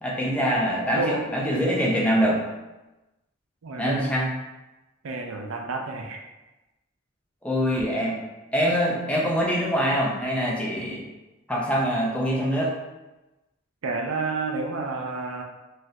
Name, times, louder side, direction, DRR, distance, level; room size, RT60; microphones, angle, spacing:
voice 1, 0.0-2.4 3.8-4.3 7.4-8.2 8.5-11.0 11.5-12.7, equal, 5° left, -4 dB, 0.4 m, -24 dB
voice 2, 3.6-4.0 5.0-6.2 13.8-15.4, right 3 dB, 80° right, 2 dB, 0.5 m, -30 dB
3.1 x 2.3 x 2.7 m, 1.0 s
head